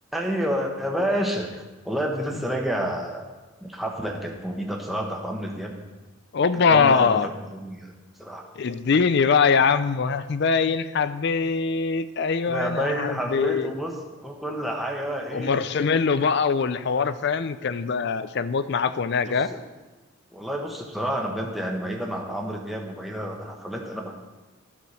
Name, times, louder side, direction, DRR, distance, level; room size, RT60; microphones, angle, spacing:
voice 1, 0.1-1.5 1.8-3.2 3.6-5.8 6.7-7.9 8.2-8.4 12.5-15.6 19.3-19.6 20.3-24.1, equal, ahead, 0 dB, 1.0 m, -29 dB
voice 2, 6.3-7.3 8.6-13.7 15.3-19.5, left 5 dB, 55° left, 14 dB, 0.4 m, -22 dB
12.0 x 5.0 x 6.3 m, 1.2 s
head